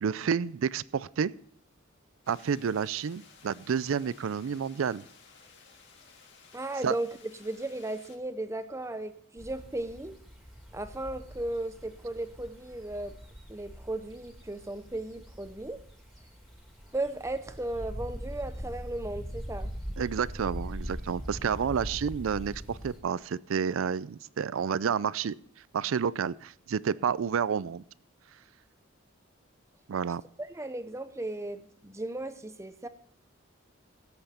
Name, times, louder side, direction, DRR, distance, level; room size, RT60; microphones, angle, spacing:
voice 1, 0.0-1.3 2.3-5.0 6.8-6.9 20.0-25.3 25.7-27.8 29.9-30.2, right 7 dB, 75° right, 20 dB, 0.4 m, -30 dB
sound 1, 2.2-8.2, left 5 dB, 60° left, 1.8 m, -56 dB
voice 2, 6.5-10.1 10.7-13.1 13.5-15.8 16.9-19.7 30.4-32.9, right 2 dB, 15° right, 11 dB, 0.7 m, -36 dB
sound 2, 9.4-23.0, equal, ahead, 2.4 m, -42 dB
16.5 x 7.9 x 4.3 m, 0.66 s
head